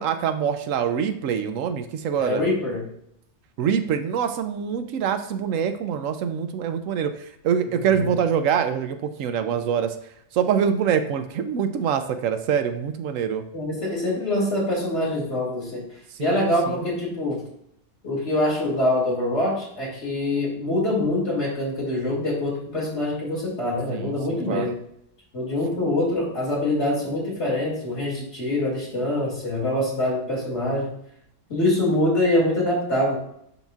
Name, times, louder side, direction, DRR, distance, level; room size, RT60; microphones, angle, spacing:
voice 1, 0.0-2.5 3.6-9.9 10.3-13.4 16.2-16.8 23.9-24.8, right 8 dB, 85° right, 9 dB, 1.0 m, -25 dB
voice 2, 2.2-2.8 7.7-8.1 13.5-15.8 16.2-17.4 18.0-24.8 25.3-30.9 31.5-33.2, left 1 dB, 60° left, -5 dB, 2.7 m, -24 dB
10.5 x 4.0 x 2.4 m, 0.73 s
omnidirectional pair, 1.3 m